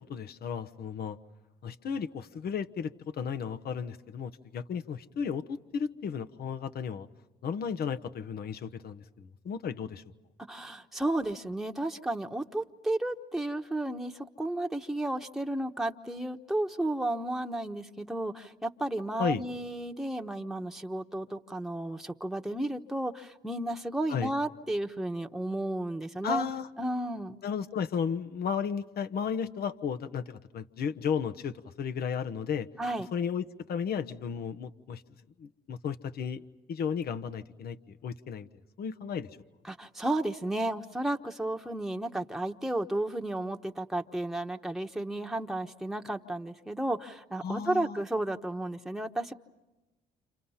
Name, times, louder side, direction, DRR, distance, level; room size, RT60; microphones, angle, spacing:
voice 1, 0.1-1.2 1.6-7.1 7.4-10.0 19.2-19.4 24.1-24.3 26.2-26.7 27.4-32.7 33.1-35.0 35.4-36.4 36.7-38.5 38.8-39.3 47.4-48.0, left 7 dB, 60° left, 9 dB, 1.1 m, -34 dB
voice 2, 10.5-26.4 26.8-27.4 32.8-33.1 39.6-49.3, right 1 dB, ahead, 3 dB, 1.2 m, -33 dB
29.5 x 27.0 x 5.7 m, 1.1 s
supercardioid pair, 60°, 18 cm